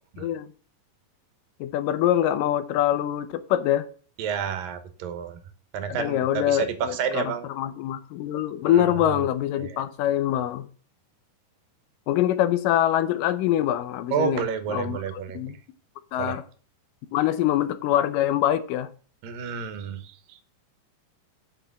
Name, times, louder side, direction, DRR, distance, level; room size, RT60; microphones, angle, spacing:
voice 1, 0.2-0.5 1.6-3.9 5.9-10.7 12.1-14.5 14.7-15.6 16.1-16.4 17.1-18.9, left 12 dB, 80° left, 2.4 m, -24 dB
voice 2, 4.2-5.4 5.7-7.5 8.7-9.3 9.6-9.8 14.1-15.4 16.2-16.4 19.2-20.4, right 7 dB, 85° right, 2.9 m, -30 dB
6.9 x 6.0 x 7.5 m
omnidirectional pair, 3.8 m